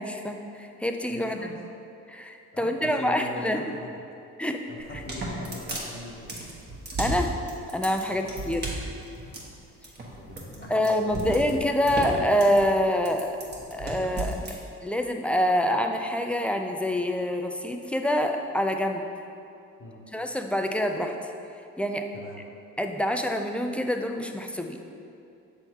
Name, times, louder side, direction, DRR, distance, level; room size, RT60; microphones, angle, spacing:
voice 1, 0.0-1.5 2.1-3.6 4.4-4.6 7.0-7.3 7.7-8.6 10.7-13.4 13.7-14.5 14.8-19.0 20.1-21.1 21.8-22.1 22.8-24.8, equal, 5° left, 4 dB, 0.4 m, -26 dB
voice 2, 1.1-1.6 2.5-4.0 4.7-6.4 8.1-8.3 10.1-11.6 19.8-20.0 22.1-22.4, left 2 dB, 40° left, 0 dB, 1.0 m, -42 dB
sound 1, 4.8-14.6, right 2 dB, 35° right, 1.3 m, -34 dB
6.7 x 3.6 x 4.6 m, 2.6 s
cardioid pair, 90°, 30 cm